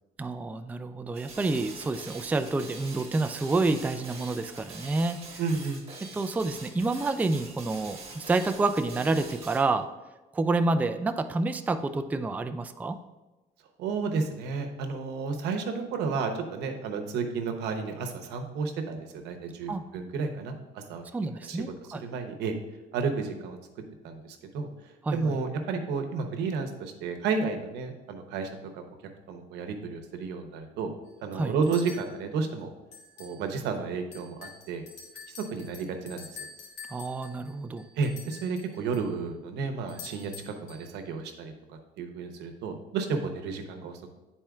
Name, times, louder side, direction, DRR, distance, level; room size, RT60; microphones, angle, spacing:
voice 1, 0.2-5.2 6.1-9.9 10.3-13.0 19.7-19.8 21.1-22.0 25.0-25.4 31.3-31.5 36.9-37.9, right 3 dB, 10° right, 8 dB, 0.3 m, -28 dB
sound 1, 1.1-9.7, right 3 dB, 35° right, 1.5 m, -45 dB
voice 2, 5.4-5.8 13.8-21.0 21.5-21.6 22.0-22.5 22.9-23.6 24.0-24.7 25.1-28.8 29.3-30.9 31.2-32.7 33.2-34.8 35.3-36.3 38.0-41.5 42.0-44.1, right 4 dB, 85° right, 6 dB, 0.8 m, -32 dB
sound 2, 31.1-31.2 31.6-32.1 32.9-33.4 33.7-33.8 34.1-39.1 39.9-40.9, left 5 dB, 80° left, 1.7 m, -47 dB
10.0 x 4.3 x 2.4 m, 1.1 s
cardioid pair, 110°, 17 cm